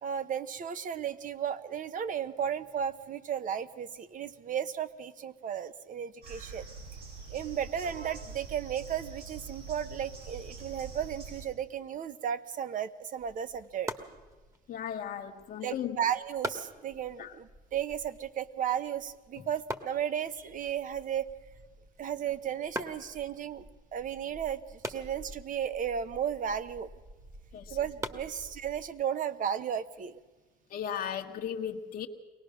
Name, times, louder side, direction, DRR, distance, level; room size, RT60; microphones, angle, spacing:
voice 1, 0.0-6.6 7.3-13.9 15.6-21.3 22.0-26.9 27.7-30.2, right 9 dB, 50° right, 1.0 m, -34 dB
sound 1, 6.2-11.4, right 5 dB, 75° right, 6.5 m, -45 dB
sound 2, 13.2-29.0, right 1 dB, 20° right, 1.6 m, -45 dB
voice 2, 14.7-16.0 17.2-17.3 27.5-27.8 30.7-32.1, left 9 dB, 60° left, 1.3 m, -36 dB
23.5 x 18.5 x 6.4 m
cardioid pair, 110°, 17 cm